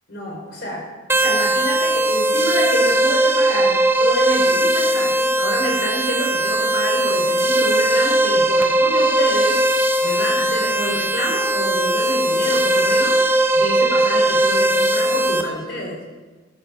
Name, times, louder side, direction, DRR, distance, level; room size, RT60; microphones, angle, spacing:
voice 1, 0.1-0.8 1.1-9.6 10.0-13.2 13.5-16.0, equal, 55° left, -1 dB, 4.8 m, -27 dB
sound 1, 1.1-15.4, right 1 dB, 10° right, 0.9 m, -19 dB
13.5 x 11.0 x 6.1 m, 1.3 s
head